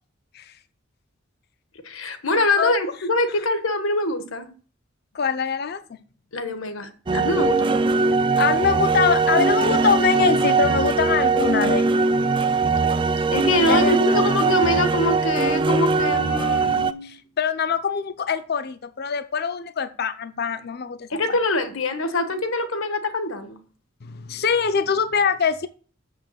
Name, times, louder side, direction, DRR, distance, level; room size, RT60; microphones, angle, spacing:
voice 1, 1.8-4.5 6.3-7.9 13.3-17.1 21.1-23.6, left 2 dB, 90° left, 1.3 m, -24 dB
voice 2, 5.1-6.0 8.4-11.9 13.7-14.2 17.0-21.4 24.0-25.7, left 6 dB, 50° left, 0.6 m, -23 dB
sound 1, 7.1-16.9, right 4 dB, 25° right, 0.4 m, -21 dB
7.0 x 5.5 x 7.4 m
head